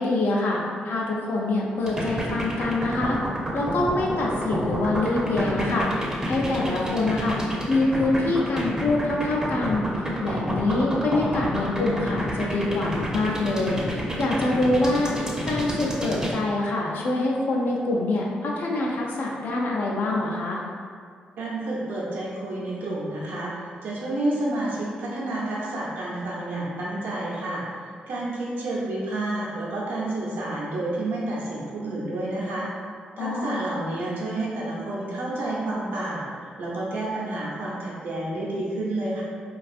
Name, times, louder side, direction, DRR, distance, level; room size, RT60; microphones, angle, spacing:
voice 1, 0.0-3.2 3.5-15.2 15.4-20.6 33.2-33.6, left 2 dB, 65° left, -2 dB, 0.5 m, -25 dB
sound 1, 1.9-16.3, right 1 dB, 20° right, 0.6 m, -29 dB
voice 2, 21.4-32.7 33.2-36.3 36.6-39.2, right 1 dB, 75° right, -6 dB, 0.6 m, -30 dB
2.5 x 2.3 x 2.4 m, 2.1 s
supercardioid pair, 50°, 4 cm